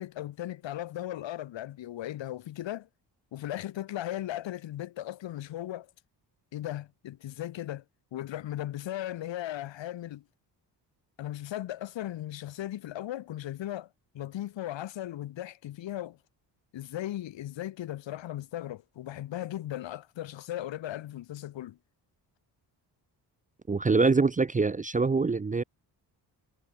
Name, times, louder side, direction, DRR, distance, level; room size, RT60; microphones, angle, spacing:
voice 1, 0.0-2.9 3.3-5.9 6.5-7.8 8.1-10.2 11.2-13.9 14.1-16.2 16.7-21.8, left 13 dB, 85° left, 5.4 m, -37 dB
voice 2, 23.7-25.6, right 4 dB, 20° right, 0.5 m, -24 dB
cardioid pair, 80°, 43 cm